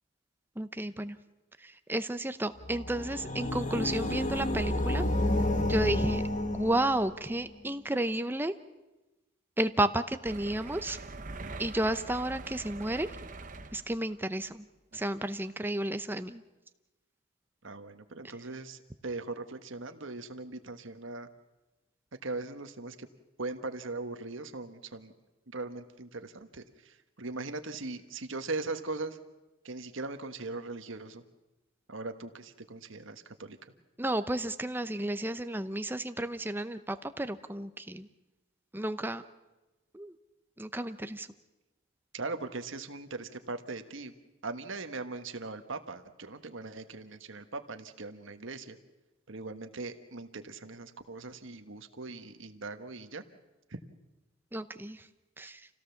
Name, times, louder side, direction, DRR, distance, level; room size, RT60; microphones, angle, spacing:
voice 1, 0.6-1.2 1.9-5.0 5.7-6.2 6.5-8.5 9.6-11.0 11.6-13.1 13.7-14.6 14.9-16.4 34.0-38.1 38.7-39.2 39.9-40.1 40.6-41.3 54.5-55.0 55.4-55.6, right 1 dB, 10° right, 10 dB, 0.7 m, -32 dB
sound 1, 2.6-7.3, left 1 dB, 35° left, 1.4 m, -30 dB
sound 2, 10.2-14.2 14.9-15.1 15.5-15.6, right 3 dB, 40° right, 0.9 m, -44 dB
voice 2, 17.6-21.3 22.2-23.1 23.4-25.1 25.5-26.6 27.2-29.2 29.6-31.2 31.9-33.6 42.1-44.1 44.4-48.8 49.3-53.2, right 3 dB, 65° right, 7 dB, 1.4 m, -40 dB
27.5 x 17.0 x 7.2 m, 1.1 s
head